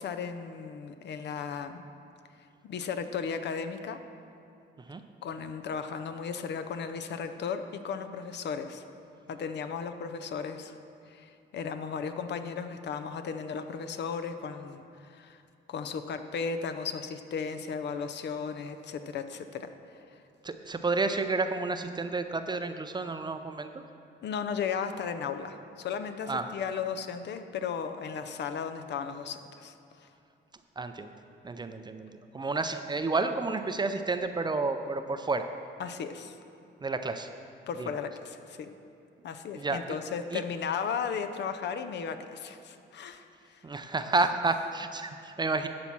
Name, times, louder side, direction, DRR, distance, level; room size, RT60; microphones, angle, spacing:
voice 1, 0.0-1.8 2.6-4.0 5.2-8.8 9.3-10.8 11.1-15.4 15.7-20.0 24.2-30.1 35.8-36.4 37.7-38.7 39.2-43.6, left 6 dB, 60° left, 9 dB, 0.6 m, -35 dB
voice 2, 20.4-23.7 26.3-26.5 30.8-31.1 31.4-35.4 36.8-37.3 37.8-37.9 39.5-39.8 40.3-40.4 43.6-45.7, right 3 dB, 20° right, 8 dB, 0.4 m, -30 dB
11.5 x 4.2 x 6.0 m, 2.7 s
cardioid pair, 90°, 20 cm